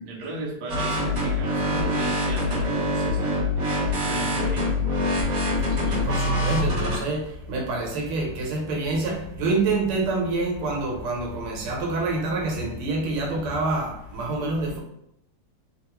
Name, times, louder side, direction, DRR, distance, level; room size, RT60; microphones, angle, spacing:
voice 1, 0.0-3.4 3.8-4.7 5.4-5.6, right 2 dB, 65° right, -1 dB, 1.0 m, -36 dB
sound 1, 0.7-7.0, left 1 dB, 40° right, 1.3 m, -24 dB
voice 2, 5.8-14.8, right 3 dB, 85° right, 0 dB, 1.6 m, -27 dB
3.5 x 2.3 x 2.9 m, 0.77 s
omnidirectional pair, 2.4 m